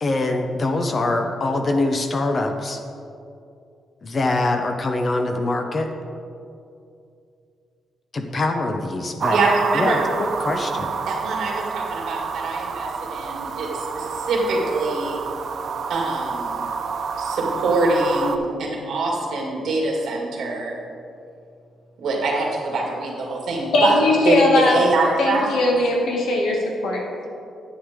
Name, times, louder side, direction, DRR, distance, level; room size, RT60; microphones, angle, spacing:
voice 1, 0.0-2.8 4.0-5.9 8.1-9.4 9.7-10.0 10.4-10.9, left 2 dB, 30° left, 5 dB, 0.6 m, -23 dB
sound 1, 9.2-18.4, right 5 dB, 50° right, 0.5 m, -28 dB
voice 2, 9.3-10.0 11.1-15.2 15.9-16.6 17.2-20.8 22.0-24.0 24.2-24.4 24.7-25.5, right 2 dB, 65° right, -2 dB, 2.2 m, -24 dB
voice 3, 23.7-24.8 25.2-27.3, left 2 dB, 80° left, -1 dB, 1.9 m, -19 dB
10.0 x 9.2 x 3.6 m, 2.5 s
wide cardioid pair, 165°, 0 cm